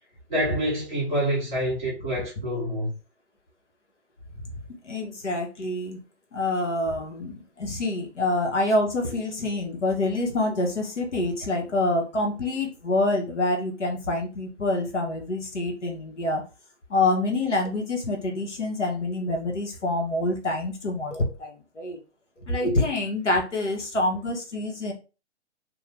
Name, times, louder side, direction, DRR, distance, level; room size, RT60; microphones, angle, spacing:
voice 1, 0.3-2.9, equal, 5° left, 0.3 m, -27 dB
voice 2, 4.8-6.0 6.3-16.4 16.9-22.0 22.5-24.9, left 2 dB, 80° left, 1.1 m, -26 dB
2.8 x 2.2 x 3.2 m
figure-of-eight pair, 125°, 35 cm